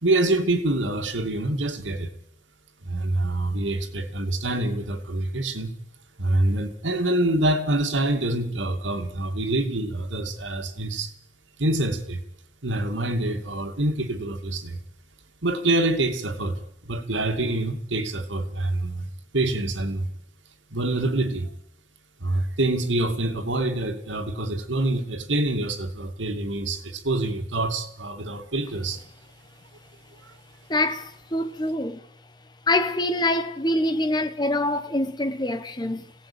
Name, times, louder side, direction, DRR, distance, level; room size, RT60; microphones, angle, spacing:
voice 1, 0.0-2.1 2.8-5.7 6.2-11.1 11.6-12.2 12.6-14.8 15.4-19.1 19.3-20.1 20.7-21.5 22.2-29.0, right 2 dB, 85° right, 2.6 m, -26 dB
voice 2, 30.7-32.0 32.7-36.1, left 1 dB, 20° left, 1.2 m, -25 dB
26.0 x 17.5 x 8.8 m
head